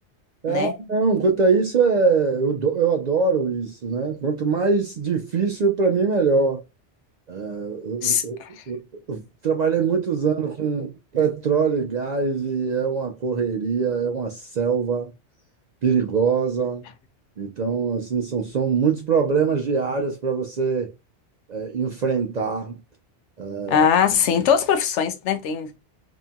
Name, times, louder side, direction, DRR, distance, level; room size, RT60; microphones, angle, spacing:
voice 1, 0.4-6.6 7.3-8.4 8.7-8.8 9.1-10.9 11.1-15.1 15.8-16.8 17.4-20.9 21.5-22.7 23.4-23.9, right 5 dB, 60° right, 0.4 m, -23 dB
voice 2, 8.0-8.6 23.7-25.7, left 7 dB, 80° left, 0.9 m, -21 dB
2.8 x 2.6 x 2.2 m
omnidirectional pair, 1.2 m